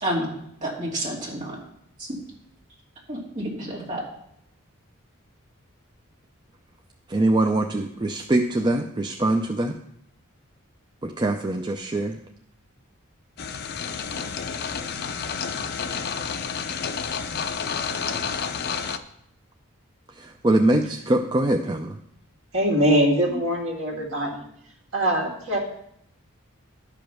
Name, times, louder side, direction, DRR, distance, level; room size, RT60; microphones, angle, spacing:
voice 1, 0.0-0.3 0.6-1.6 2.0-2.2 3.1-4.0, right 1 dB, 35° right, -5 dB, 3.0 m, -29 dB
voice 2, 7.1-9.7 11.0-12.2 20.2-21.9, right 1 dB, 20° right, 3 dB, 0.5 m, -23 dB
sound 1, 13.4-19.0, left 6 dB, 50° left, 0.6 m, -30 dB
voice 3, 22.5-24.4 24.9-25.6, equal, 70° right, 0 dB, 2.1 m, -22 dB
11.5 x 5.2 x 6.1 m, 0.74 s
head